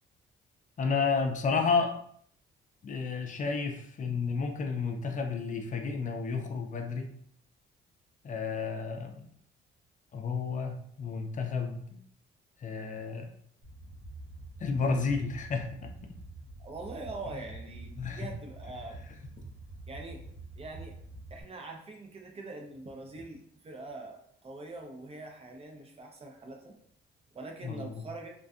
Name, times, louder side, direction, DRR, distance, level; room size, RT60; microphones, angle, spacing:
voice 1, 0.8-2.0 2.8-7.1 8.2-9.3 10.1-12.0 12.6-13.3 14.6-15.9 18.0-18.3 19.4-19.5 27.6-28.0, left 5 dB, 40° left, 4 dB, 0.4 m, -31 dB
sound 1, 13.6-21.4, right 2 dB, 90° right, 0.7 m, -47 dB
voice 2, 16.6-19.0 19.9-20.2 20.6-21.0 21.3-26.8 27.3-28.3, right 2 dB, 30° right, 2 dB, 0.5 m, -43 dB
2.5 x 2.2 x 2.4 m, 0.65 s
cardioid pair, 90°, 20 cm